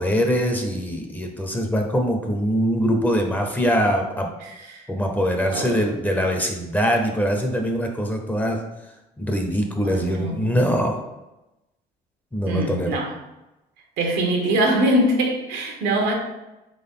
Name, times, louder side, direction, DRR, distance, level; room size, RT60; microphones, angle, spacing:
voice 1, 0.0-4.3 4.9-8.6 9.2-11.0 12.3-13.0, equal, 10° left, 0.7 m, -23 dB
voice 2, 4.4-4.8 5.5-5.9 9.8-10.6 12.5-13.1 14.0-16.1, right 1 dB, 85° right, 1.0 m, -23 dB
3.9 x 3.7 x 3.7 m
cardioid pair, 110°, 17 cm